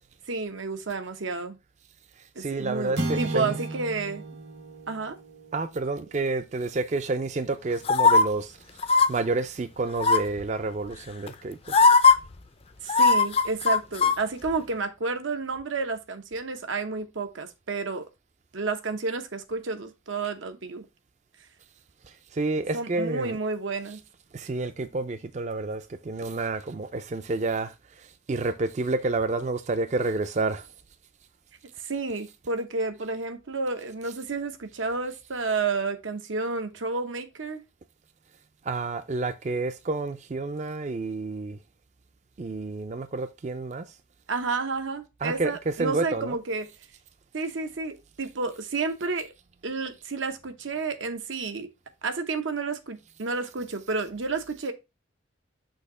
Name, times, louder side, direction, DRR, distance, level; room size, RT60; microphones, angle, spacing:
voice 1, 0.3-1.6 2.4-4.2 4.9-5.2 12.8-18.1 18.5-20.8 22.7-24.0 31.8-37.6 44.3-46.7 47.3-49.3 49.6-51.7 52.0-54.7, right 3 dB, 90° right, 0.9 m, -31 dB
voice 2, 2.4-3.6 5.5-11.6 22.3-23.4 24.3-30.7 38.6-41.6 42.4-43.9 45.2-46.4, right 3 dB, 35° right, 0.4 m, -29 dB
sound 1, 2.9-7.4, right 2 dB, 60° right, 1.1 m, -35 dB
sound 2, 7.9-8.2 8.8-9.1 10.0-10.4 11.3-11.4 11.7-12.1 12.9-14.2 14.5-14.6, left 4 dB, 30° left, 0.4 m, -18 dB
6.4 x 2.8 x 5.3 m
head